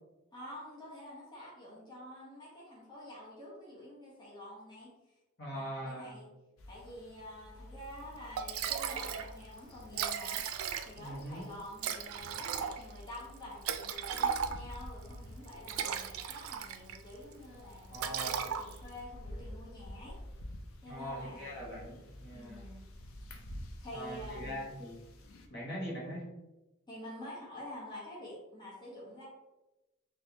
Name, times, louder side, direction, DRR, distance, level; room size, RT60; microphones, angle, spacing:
voice 1, 0.3-4.9 5.5-6.3 6.7-10.4 10.8-20.2 20.8-21.6 22.3-22.8 23.8-24.6 26.9-29.2, left 1 dB, 20° left, -7 dB, 1.1 m, -48 dB
voice 2, 5.4-6.2 11.0-11.5 17.9-18.3 20.8-22.6 23.9-25.0 25.5-26.3, equal, 55° left, -5 dB, 1.2 m, -41 dB
sound 1, 6.6-25.5, left 1 dB, 85° left, 0.5 m, -50 dB
Liquid, 8.0-8.1 8.4-9.3 9.6-9.7 9.8-11.1 11.8-14.8 15.5-17.0 17.3-17.6 17.9-19.0, right 8 dB, 90° right, 0.3 m, -36 dB
3.9 x 2.7 x 2.8 m, 1.0 s
head